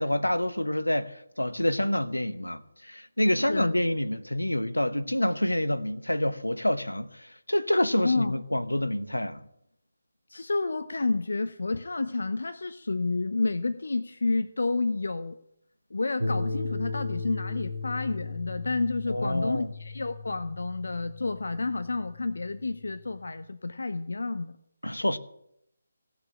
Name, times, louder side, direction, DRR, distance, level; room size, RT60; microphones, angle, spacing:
voice 1, 0.0-9.4 19.1-19.7 24.8-25.2, left 1 dB, 90° left, 1.0 m, -27 dB
voice 2, 8.0-8.3 10.3-15.3 15.9-24.5, left 3 dB, 65° left, 0.7 m, -30 dB
sound 1, 16.2-23.3, left 3 dB, 90° right, 1.1 m, -36 dB
16.5 x 7.0 x 9.8 m
figure-of-eight pair, 150°, 0 cm